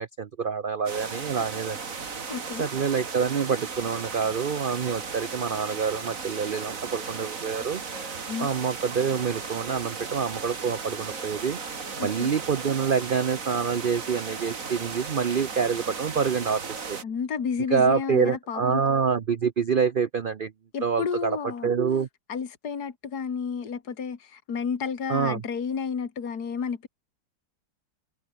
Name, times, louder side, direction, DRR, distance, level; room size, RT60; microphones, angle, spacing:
voice 1, 0.0-1.8 2.6-7.8 8.4-11.6 12.0-16.6 16.9-17.0 17.7-20.5 20.8-21.4 21.6-22.1 25.1-25.4, right 6 dB, 70° right, 0.5 m, -26 dB
sound 1, 0.9-17.0, right 5 dB, 50° right, 2.4 m, -36 dB
voice 2, 2.3-2.7 8.3-8.5 12.0-12.3 17.0-18.8 20.7-21.7 22.3-26.9, left 6 dB, 60° left, 2.4 m, -31 dB
Wind instrument woodwind instrument, 6.5-9.5 9.8-13.1, left 1 dB, 20° left, 6.1 m, -53 dB
omnidirectional pair, 1.9 m